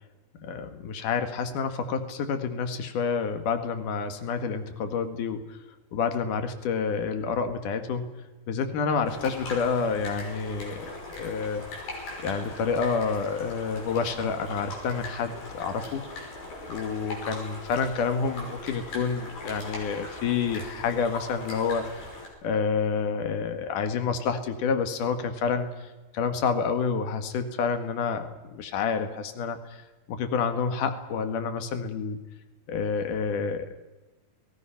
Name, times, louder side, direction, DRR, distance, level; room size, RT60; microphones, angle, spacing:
voice 1, 0.4-5.6 5.9-8.1 8.5-11.6 12.2-16.0 16.7-22.1 22.4-25.7 26.1-29.8 30.1-32.2 32.7-33.8, left 5 dB, 65° left, 7 dB, 3.2 m, -28 dB
sound 1, 9.1-22.3, left 2 dB, 85° left, 8.0 m, -40 dB
28.5 x 20.5 x 5.8 m, 1.2 s
omnidirectional pair, 4.0 m